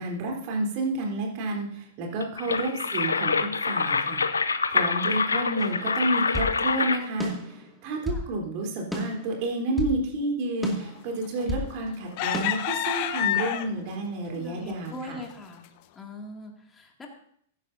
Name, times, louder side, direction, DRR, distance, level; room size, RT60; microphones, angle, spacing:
voice 1, 0.0-4.2 4.7-15.2, right 2 dB, 50° right, 0 dB, 3.7 m, -30 dB
sound 1, 2.2-7.2, left 4 dB, 90° left, 0.5 m, -26 dB
sound 2, 5.6-6.6 7.2-8.3 8.9-10.0 10.6-11.7 12.3-12.5, equal, ahead, 2.4 m, -33 dB
sound 3, 11.4-11.7 12.2-14.0 14.5-14.7 15.1-15.3, left 12 dB, 50° left, 0.8 m, -28 dB
voice 2, 13.7-14.0 14.3-15.6 16.0-17.1, left 1 dB, 15° left, 1 dB, 2.4 m, -42 dB
15.0 x 11.0 x 2.7 m, 0.64 s
hypercardioid pair, 110°, 0 cm